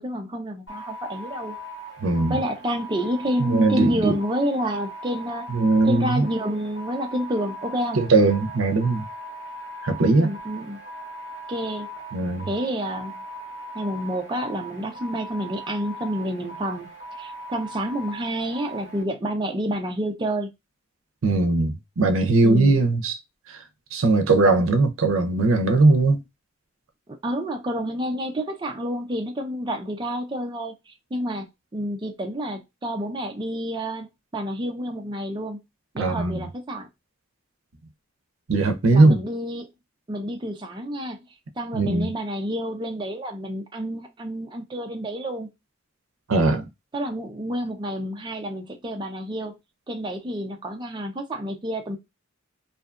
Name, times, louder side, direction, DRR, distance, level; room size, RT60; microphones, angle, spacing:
voice 1, 0.0-1.6 2.3-5.5 5.8-8.0 10.1-10.8 11.5-11.9 12.5-13.2 13.7-16.9 17.2-20.5 22.4-22.8 27.2-35.6 35.9-36.9 38.9-39.7 40.1-41.2 41.6-45.5 46.9-49.6 49.9-52.0, equal, 25° right, 0.5 m, -29 dB
sound 1, 0.7-19.0, right 1 dB, 65° left, 1.3 m, -39 dB
voice 2, 2.0-2.4 3.4-4.2 5.5-6.3 8.0-9.1 9.8-10.3 12.1-12.5 21.2-23.2 23.5-23.6 23.9-26.2 36.0-36.4 38.5-39.2 41.7-42.1 46.3-46.7, right 3 dB, 85° right, 0.5 m, -19 dB
2.6 x 2.2 x 2.4 m
head